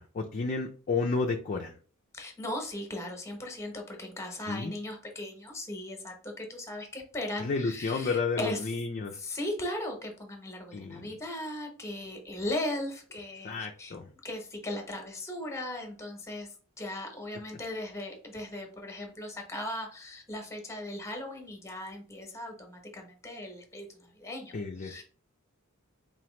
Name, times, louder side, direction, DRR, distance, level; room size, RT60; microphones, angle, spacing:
voice 1, 0.0-1.8 4.5-4.7 7.4-9.2 10.7-11.2 13.4-14.1 24.5-25.0, left 4 dB, 40° left, 2 dB, 0.4 m, -32 dB
voice 2, 2.1-8.6 9.1-13.9 14.2-25.0, left 1 dB, 15° left, 2 dB, 0.9 m, -38 dB
3.9 x 2.9 x 3.1 m, 0.41 s
head